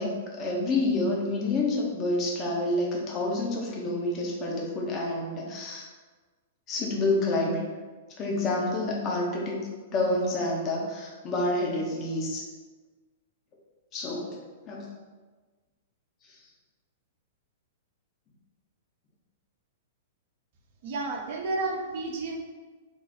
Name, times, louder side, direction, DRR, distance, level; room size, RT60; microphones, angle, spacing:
voice 1, 0.0-5.9 6.7-7.6 8.2-9.6 9.9-12.4 13.9-14.4 14.7-14.8, left 2 dB, 30° left, -2 dB, 0.8 m, -28 dB
voice 2, 20.8-22.4, right 3 dB, 50° right, 1 dB, 0.7 m, -31 dB
3.6 x 2.3 x 4.2 m, 1.3 s
figure-of-eight pair, 105°, 0 cm